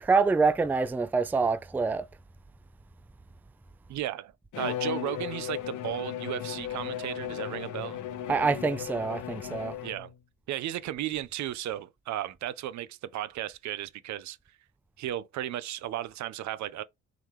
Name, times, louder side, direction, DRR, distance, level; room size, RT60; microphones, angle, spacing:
voice 1, 0.0-2.1 8.3-9.8, right 4 dB, 5° right, 0.4 m, -26 dB
voice 2, 3.9-8.0 9.8-10.1 10.5-14.4 15.0-16.8, right 12 dB, 60° right, 0.5 m, -35 dB
Bowed string instrument, 4.5-10.2, left 11 dB, 65° left, 0.9 m, -36 dB
3.8 x 2.9 x 3.2 m
hypercardioid pair, 55°, 32 cm